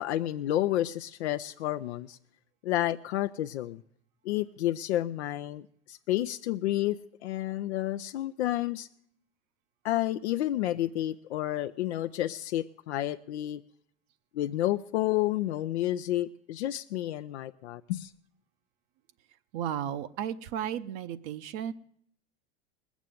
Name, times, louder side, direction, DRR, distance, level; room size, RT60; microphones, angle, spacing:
voice 1, 0.0-2.2 2.6-3.8 4.2-7.0 7.2-8.9 9.8-13.6 14.3-18.1, left 14 dB, 80° left, 9 dB, 0.5 m, -30 dB
voice 2, 19.5-21.7, right 10 dB, 55° right, 10 dB, 0.7 m, -34 dB
19.0 x 7.2 x 7.7 m, 0.68 s
hypercardioid pair, 105°, 33 cm